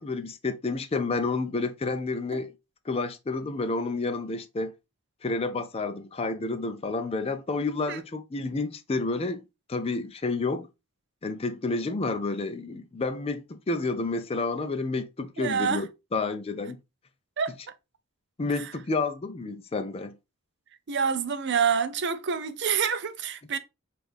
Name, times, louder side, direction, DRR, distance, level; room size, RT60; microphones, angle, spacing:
voice 1, 0.0-2.5 2.9-4.7 5.2-9.4 9.7-10.7 11.2-16.8 18.4-20.1, left 3 dB, 25° left, 0.4 m, -30 dB
voice 2, 15.4-15.8 17.4-17.5 20.9-23.6, right 6 dB, 55° right, 0.6 m, -27 dB
6.1 x 2.5 x 3.3 m
head